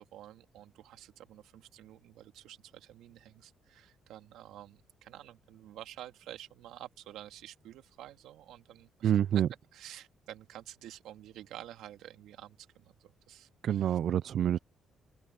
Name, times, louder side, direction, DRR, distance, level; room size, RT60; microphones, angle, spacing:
voice 1, 0.0-9.1 9.7-14.0, right 12 dB, 85° right, 2.1 m, -50 dB
voice 2, 9.0-9.5 13.6-14.6, right 10 dB, 65° right, 0.3 m, -27 dB
cardioid pair, 90°, 0 cm